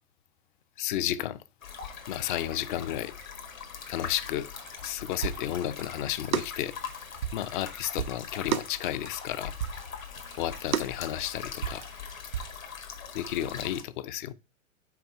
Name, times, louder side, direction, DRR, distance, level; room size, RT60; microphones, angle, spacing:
voice 1, 0.8-1.4 2.1-3.1 3.9-4.5 4.8-6.8 7.3-9.5 10.4-11.8 13.1-14.3, left 12 dB, 40° left, 0.6 m, -32 dB
sound 1, 1.6-13.8, left 6 dB, 75° left, 1.8 m, -42 dB
sound 2, 4.4-6.1 6.3-9.3 9.6-12.6, right 9 dB, 80° right, 0.6 m, -34 dB
5.9 x 4.5 x 5.5 m
figure-of-eight pair, 105°, 41 cm